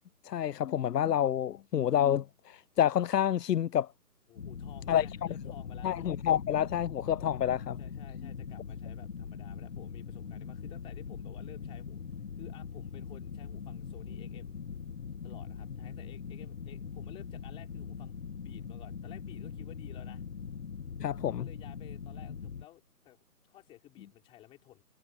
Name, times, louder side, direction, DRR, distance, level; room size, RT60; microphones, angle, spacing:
voice 1, 0.2-3.9 4.9-5.1 5.8-7.8 21.0-21.5, left 10 dB, 90° left, 0.6 m, -28 dB
voice 2, 4.3-6.1 7.3-7.5 7.8-12.0 12.4-14.6 15.2-20.2 21.4-24.8, left 14 dB, 10° left, 5.6 m, -54 dB
sound 1, 4.4-22.7, left 6 dB, 55° left, 2.4 m, -42 dB
hypercardioid pair, 165°, 47 cm